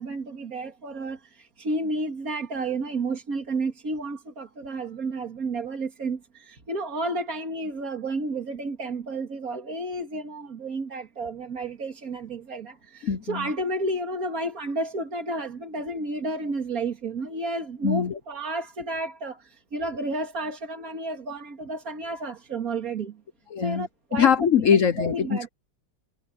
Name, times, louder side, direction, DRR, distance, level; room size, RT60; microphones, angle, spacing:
voice 1, 0.0-23.2 23.6-24.5 25.0-25.5, right 2 dB, 50° right, 2.7 m, -31 dB
voice 2, 13.0-13.5 17.8-18.2 23.5-23.9 24.1-25.5, left 7 dB, 55° left, 1.0 m, -22 dB
omnidirectional pair, 2.0 m